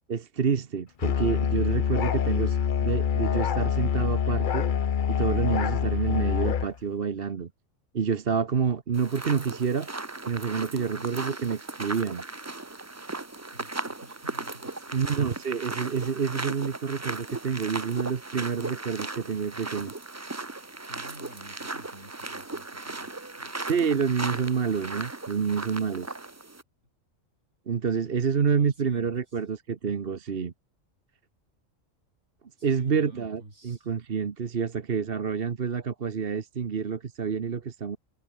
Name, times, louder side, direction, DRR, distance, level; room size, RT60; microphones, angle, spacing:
voice 1, 0.1-4.7 5.1-7.5 7.9-9.9 10.2-12.2 14.9-19.9 23.6-26.1 27.7-30.5 32.6-38.0, right 6 dB, 50° right, 1.3 m, -28 dB
Musical instrument, 1.0-6.7, left 8 dB, 45° left, 0.8 m, -26 dB
sound 1, 8.9-26.6, right 2 dB, 15° right, 0.7 m, -37 dB
voice 2, 10.8-11.1 13.5-15.4 20.8-23.1 23.4-23.7 25.9-26.1 28.1-29.1 32.6-33.9, right 2 dB, 65° right, 5.6 m, -50 dB
omnidirectional pair, 1.3 m